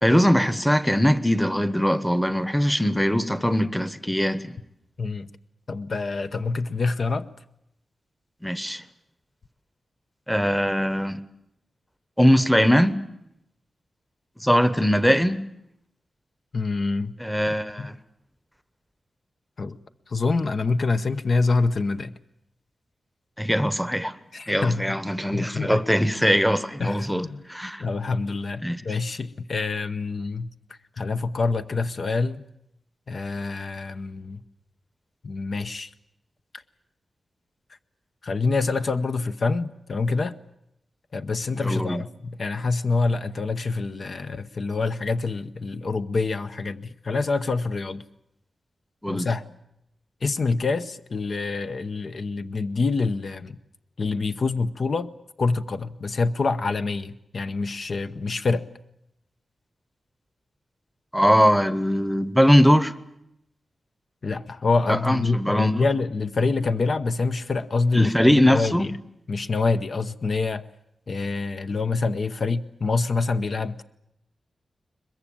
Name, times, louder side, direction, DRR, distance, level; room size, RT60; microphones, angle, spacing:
voice 1, 0.0-4.6 8.4-8.8 10.3-11.2 12.2-13.0 14.4-15.4 17.2-17.9 23.4-24.1 24.5-27.8 28.6-28.8 41.5-42.0 49.0-49.3 61.1-62.9 64.9-65.8 67.9-68.9, equal, ahead, 1.0 m, -21 dB
voice 2, 5.0-5.3 5.7-7.3 16.5-17.1 17.8-17.9 19.6-19.8 20.1-22.1 24.3-25.0 25.3-25.8 26.8-27.4 27.8-30.5 31.0-32.4 33.1-34.4 35.2-35.9 38.2-40.4 41.1-48.0 49.1-49.4 50.2-53.6 54.0-55.1 55.4-58.6 64.2-68.9 69.3-70.6 71.1-73.8, left 3 dB, 55° left, 0.8 m, -26 dB
22.5 x 21.5 x 8.7 m
wide cardioid pair, 100°, 0 cm